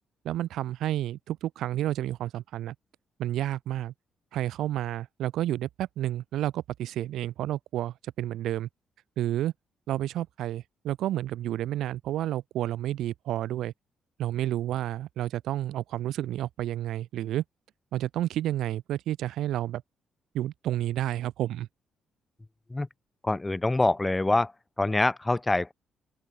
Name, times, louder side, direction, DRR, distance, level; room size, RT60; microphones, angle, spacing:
voice 1, 0.2-2.7 3.2-3.9 4.3-8.7 9.2-9.5 9.9-13.7 14.2-17.4 17.9-19.8 20.3-21.7, right 13 dB, 80° right, 0.4 m, -30 dB
voice 2, 23.2-24.5 24.8-25.7, left 2 dB, 15° left, 0.4 m, -25 dB
open air
cardioid pair, 90°, 0 cm